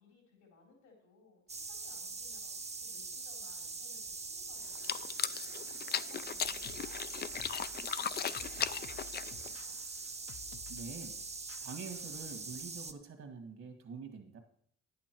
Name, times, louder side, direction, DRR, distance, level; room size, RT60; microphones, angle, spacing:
voice 1, 0.0-9.8, left 4 dB, 85° left, -1 dB, 3.7 m, -63 dB
sound 1, 1.5-12.9, right 4 dB, 20° right, 0.8 m, -43 dB
sound 2, 4.7-9.6, left 8 dB, 35° left, 0.4 m, -37 dB
sound 3, 6.4-12.2, left 8 dB, 50° left, 0.8 m, -55 dB
voice 2, 10.7-11.2 11.6-14.4, right 5 dB, 60° right, 3 dB, 1.8 m, -46 dB
10.0 x 8.6 x 4.5 m, 0.66 s
cardioid pair, 90°, 30 cm